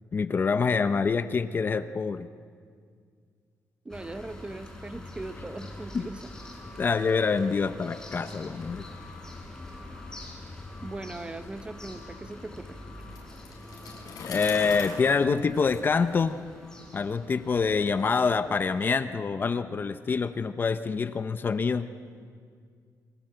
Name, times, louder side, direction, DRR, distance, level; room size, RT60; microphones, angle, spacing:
voice 1, 0.1-2.3 5.9-6.0 6.8-8.8 14.3-16.4 16.9-21.9, left 5 dB, 30° left, 11 dB, 0.8 m, -26 dB
voice 2, 3.8-6.2 10.8-12.8, right 2 dB, 15° right, 9 dB, 1.0 m, -39 dB
sound 1, 3.9-18.9, left 1 dB, 10° left, 4.8 m, -45 dB
Bicycle, 13.0-16.8, left 5 dB, 75° left, 6.1 m, -41 dB
29.0 x 24.5 x 7.8 m, 2.1 s
wide cardioid pair, 165°, 6 cm